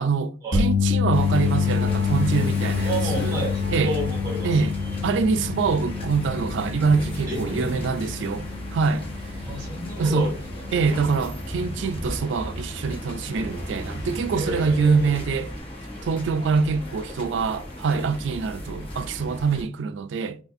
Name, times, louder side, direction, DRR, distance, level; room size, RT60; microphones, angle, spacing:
voice 1, 0.0-3.4 3.7-4.0 4.4-4.7 5.0-9.1 10.0-10.3 10.7-15.5 16.0-20.4, right 5 dB, 75° right, 0.3 m, -24 dB
sound 1, 0.5-12.8 13.1-13.4 15.6-15.7, left 6 dB, 60° left, 1.1 m, -27 dB
sound 2, 1.1-19.6, equal, 30° left, 1.1 m, -36 dB
voice 2, 2.8-4.6 7.2-7.7 9.4-10.3 14.3-15.1, right 1 dB, 20° right, 1.6 m, -31 dB
5.1 x 2.4 x 2.5 m
head